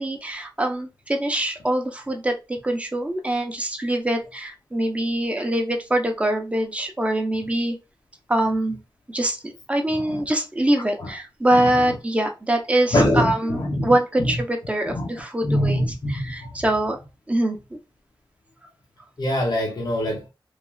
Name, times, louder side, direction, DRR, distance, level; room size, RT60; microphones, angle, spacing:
voice 1, 0.0-7.8 8.3-8.8 9.1-17.0 17.3-17.8, right 1 dB, 15° right, 0.6 m, -24 dB
voice 2, 12.9-14.0 14.9-15.1 15.4-16.5 19.2-20.2, left 1 dB, 55° left, 0.7 m, -23 dB
3.1 x 2.3 x 2.2 m
wide cardioid pair, 95°, 8 cm